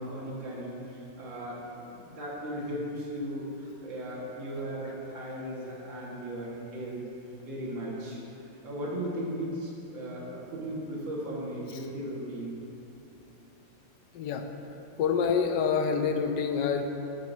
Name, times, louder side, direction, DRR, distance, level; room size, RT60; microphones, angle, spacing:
voice 1, 0.0-7.0 7.5-8.2 8.6-12.5, equal, 90° right, -4 dB, 2.5 m, -37 dB
voice 2, 15.0-16.9, left 6 dB, 75° left, 5 dB, 1.3 m, -27 dB
13.5 x 9.4 x 2.7 m, 2.8 s
omnidirectional pair, 2.0 m